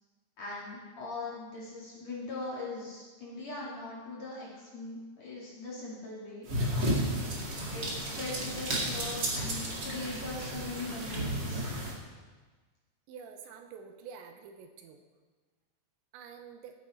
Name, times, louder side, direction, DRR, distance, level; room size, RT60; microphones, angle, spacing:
voice 1, 0.4-7.4 7.7-11.6, left 3 dB, 45° left, -6 dB, 2.9 m, -41 dB
sound 1, 6.5-11.9, right 1 dB, 55° right, 1.2 m, -33 dB
voice 2, 13.1-15.0 16.1-16.7, right 6 dB, 85° right, 6 dB, 2.9 m, -48 dB
15.5 x 8.6 x 4.4 m, 1.4 s
omnidirectional pair, 5.4 m